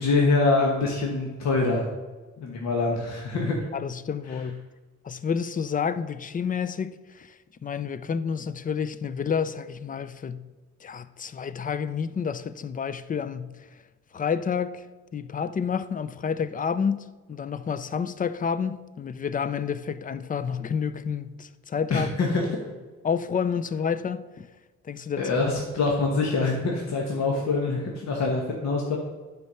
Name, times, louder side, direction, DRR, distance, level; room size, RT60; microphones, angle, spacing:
voice 1, 0.0-1.9 2.4-3.7 4.3-4.4 21.9-22.4 25.2-29.0, left 3 dB, 60° left, 1.3 m, -25 dB
voice 2, 3.7-4.6 5.0-7.4 7.6-10.4 10.8-13.6 14.1-14.8 15.1-22.1 23.0-24.5 24.8-25.3, left 6 dB, 30° left, 0.4 m, -29 dB
9.4 x 4.5 x 5.6 m
cardioid pair, 90°, 30 cm